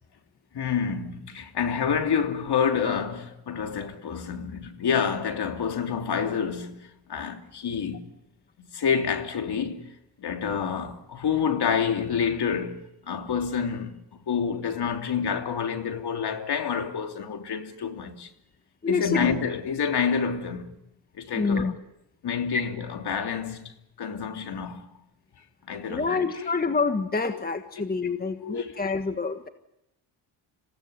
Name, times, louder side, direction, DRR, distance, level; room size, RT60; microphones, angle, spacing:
voice 1, 0.5-8.1 8.6-9.9 10.2-14.0 14.3-18.3 18.9-20.8 21.1-21.7 22.2-23.7 24.0-24.9 25.7-26.5 27.9-28.0 28.4-28.7, left 6 dB, 55° left, 3.1 m, -28 dB
voice 2, 18.8-19.3 21.3-21.7 22.5-22.6 25.9-29.5, left 4 dB, 20° left, 1.6 m, -27 dB
27.5 x 17.5 x 9.5 m
cardioid pair, 95°, 48 cm